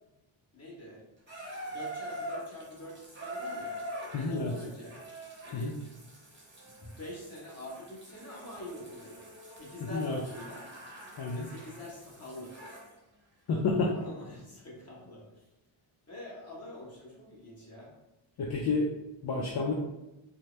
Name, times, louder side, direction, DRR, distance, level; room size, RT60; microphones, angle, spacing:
voice 1, 0.5-1.0 1.7-3.8 4.3-5.0 5.4-5.8 6.6-10.6 11.3-12.5 13.9-15.4 16.1-17.9, left 1 dB, 30° left, -5 dB, 1.3 m, -45 dB
Water tap faucet / Bathtub (filling or washing), 1.3-12.9 13.8-13.9, right 1 dB, 20° right, 0.9 m, -44 dB
voice 2, 4.1-4.5 5.5-5.7 9.9-10.2 11.2-11.5 13.5-13.9 18.4-18.9 19.2-19.7, left 3 dB, 50° left, 0 dB, 0.5 m, -29 dB
4.5 x 2.1 x 3.3 m, 0.97 s
wide cardioid pair, 125°, 50 cm